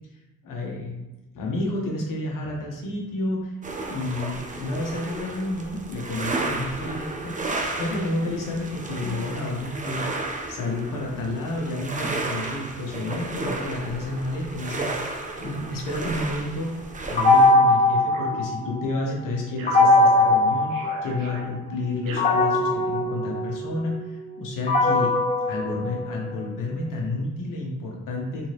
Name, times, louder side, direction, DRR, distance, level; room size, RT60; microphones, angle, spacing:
voice 1, 0.4-1.0 1.3-3.5 3.8-7.4 7.7-10.1 10.5-14.9 15.4-25.2 25.5-28.5, left 2 dB, 65° left, -1 dB, 1.2 m, -30 dB
sound 1, 3.6-17.5, right 2 dB, 20° right, 0.6 m, -33 dB
sound 2, 17.2-19.0 19.7-21.5 22.2-26.4, left 2 dB, 20° left, 0.7 m, -20 dB
sound 3, 18.1-19.1 19.6-23.2, right 3 dB, 75° right, 0.8 m, -38 dB
3.7 x 2.9 x 2.9 m, 1.0 s
supercardioid pair, 60°, 34 cm